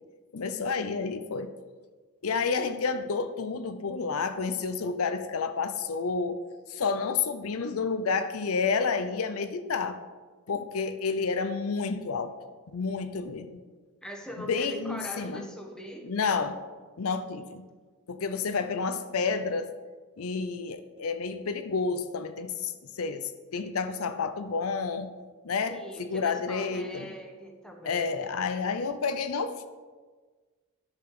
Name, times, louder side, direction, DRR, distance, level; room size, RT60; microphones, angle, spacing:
voice 1, 0.3-1.5 2.2-6.4 6.7-10.0 10.5-12.3 12.7-13.6 14.5-15.5 16.0-16.6 17.0-17.6 18.1-19.7 20.2-25.1 25.4-27.1 27.8-29.7, left 5 dB, 75° left, 9 dB, 0.6 m, -30 dB
voice 2, 14.0-16.1 25.7-28.3, equal, 5° left, 2 dB, 1.2 m, -41 dB
10.5 x 5.8 x 5.9 m, 1.4 s
head